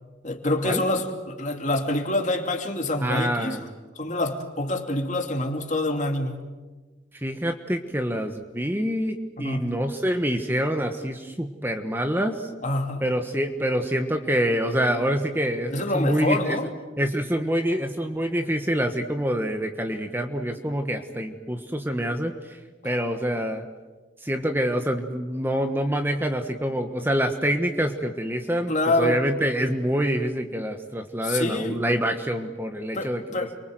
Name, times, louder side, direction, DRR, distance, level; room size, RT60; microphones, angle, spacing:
voice 1, 0.2-3.6 4.0-6.4 9.4-9.6 12.6-13.0 15.7-16.7 28.7-29.2 31.2-31.8 32.9-33.5, left 2 dB, 40° left, 4 dB, 2.7 m, -26 dB
voice 2, 3.0-3.7 7.2-12.5 13.0-16.6 17.0-23.7 24.2-33.2, equal, 10° right, 5 dB, 1.3 m, -26 dB
30.0 x 24.0 x 7.8 m, 1.3 s
head